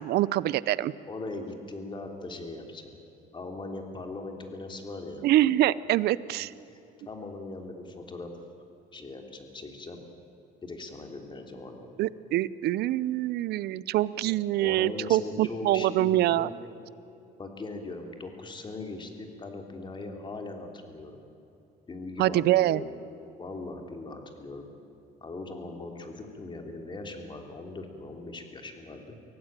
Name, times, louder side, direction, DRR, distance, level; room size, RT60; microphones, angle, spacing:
voice 1, 0.0-0.9 5.2-6.5 12.0-16.5 22.2-22.8, right 14 dB, 75° right, 19 dB, 0.7 m, -25 dB
voice 2, 1.1-2.9 3.3-5.2 6.7-6.8 7.0-8.3 8.9-10.0 10.6-11.9 14.2-16.5 17.4-21.2 21.9-22.9 23.4-24.7 25.2-29.2, left 2 dB, 30° left, 4 dB, 3.2 m, -40 dB
24.0 x 16.5 x 9.0 m, 2.9 s
cardioid pair, 110°, 17 cm